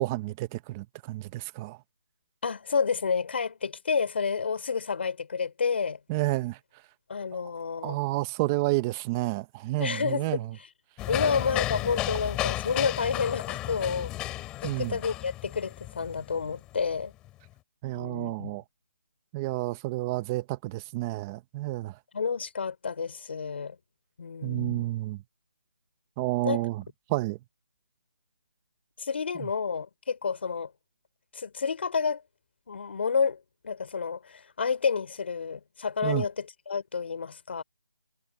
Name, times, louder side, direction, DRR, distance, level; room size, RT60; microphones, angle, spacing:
voice 1, 0.0-1.8 6.1-6.6 7.8-10.5 14.6-15.0 17.8-18.6 19.3-21.9 24.4-25.2 26.2-26.8 27.1-27.4 36.0-36.2, right 19 dB, 10° right, 0.6 m, -30 dB
voice 2, 2.4-6.0 7.1-8.0 9.8-10.7 11.1-14.3 14.6-17.1 17.9-18.6 22.1-23.8 24.2-24.9 26.4-26.7 29.0-30.7 31.3-32.2 32.7-37.6, left 5 dB, 40° left, 4.2 m, -30 dB
sound 1, 11.0-17.5, left 16 dB, 10° left, 3.0 m, -33 dB
figure-of-eight pair, 170°, 9 cm